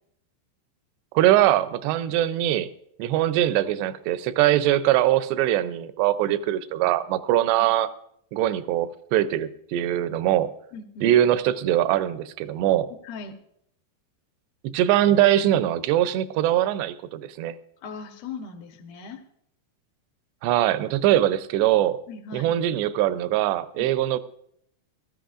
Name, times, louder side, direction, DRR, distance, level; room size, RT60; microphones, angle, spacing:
voice 1, 1.1-2.7 3.0-7.9 8.3-10.5 11.0-12.9 14.6-17.5 20.4-22.0 22.3-24.2, right 13 dB, 85° right, 13 dB, 2.8 m, -22 dB
voice 2, 7.3-7.7 10.7-11.1 13.0-13.4 17.8-19.2 22.1-22.5 23.8-23.9, left 4 dB, 70° left, 6 dB, 2.8 m, -39 dB
18.5 x 13.0 x 2.5 m, 0.71 s
omnidirectional pair, 4.9 m